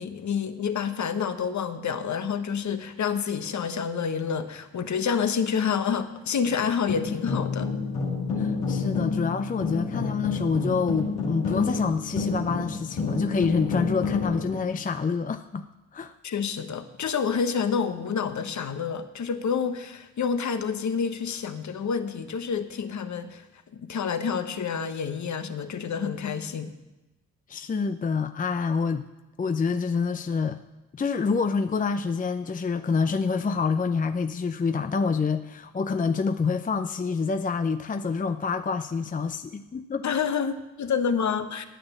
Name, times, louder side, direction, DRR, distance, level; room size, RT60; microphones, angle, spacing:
voice 1, 0.0-7.7 16.2-23.4 23.7-26.7 40.0-41.7, left 6 dB, 50° left, 10 dB, 1.2 m, -28 dB
sound 1, 6.4-14.6, left 4 dB, 85° left, 2.1 m, -29 dB
voice 2, 8.4-15.6 15.9-16.1 27.5-29.1 29.4-30.6 30.9-40.0, left 5 dB, 20° left, 9 dB, 0.6 m, -27 dB
10.0 x 8.9 x 7.2 m, 1.0 s
hypercardioid pair, 45°, 37 cm